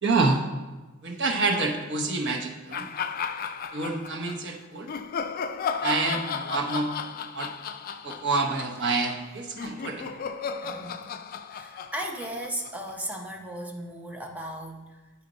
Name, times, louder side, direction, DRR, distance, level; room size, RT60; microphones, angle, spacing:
voice 1, 0.0-0.4 1.0-2.9 3.7-4.9 5.8-6.9 7.3-7.5 8.0-10.1, right 3 dB, 55° right, 2 dB, 0.9 m, -27 dB
sound 1, 2.7-4.4 4.9-13.1, left 6 dB, 40° left, 0.3 m, -34 dB
voice 2, 10.6-11.0 11.5-15.0, right 1 dB, 5° right, 1 dB, 0.7 m, -36 dB
9.0 x 4.3 x 4.0 m, 1.2 s
head